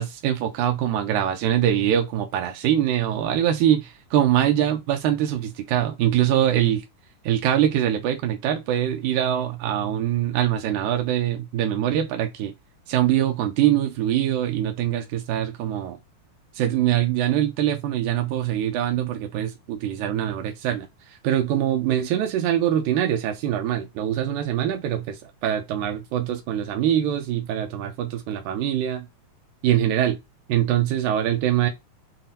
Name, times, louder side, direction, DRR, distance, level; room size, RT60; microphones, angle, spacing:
voice 1, 0.0-6.8 7.3-12.5 12.9-16.0 16.6-20.9 21.2-25.2 25.4-29.1 29.6-30.2 30.5-31.7, right 11 dB, 90° right, 2.1 m, -23 dB
5.7 x 2.0 x 2.6 m
omnidirectional pair, 3.4 m